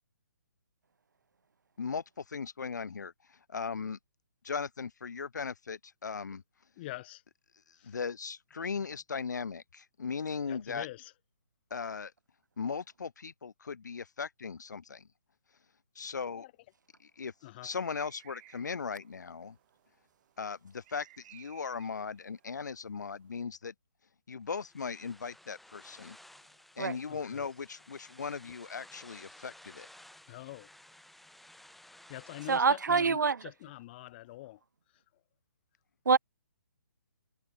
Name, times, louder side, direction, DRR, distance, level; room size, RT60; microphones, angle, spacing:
voice 1, 1.8-4.0 4.4-6.4 7.7-10.9 11.7-12.1 12.6-15.1 15.9-16.5 17.0-17.3 17.6-19.6 20.4-23.7 24.3-26.2 26.8-29.9, left 5 dB, 60° left, 5.9 m, -38 dB
voice 2, 6.8-7.2 7.8-7.9 10.5-11.1 16.4-16.5 17.4-17.7 27.1-27.5 30.3-30.7 32.1-34.6, left 17 dB, 30° left, 5.9 m, -45 dB
sound 1, 17.6-23.3, right 17 dB, 30° right, 7.8 m, -61 dB
sound 2, 24.5-32.6, left 1 dB, ahead, 4.9 m, -56 dB
voice 3, 32.5-33.4 36.1-36.2, right 5 dB, 65° right, 0.9 m, -25 dB
figure-of-eight pair, 135°, 11 cm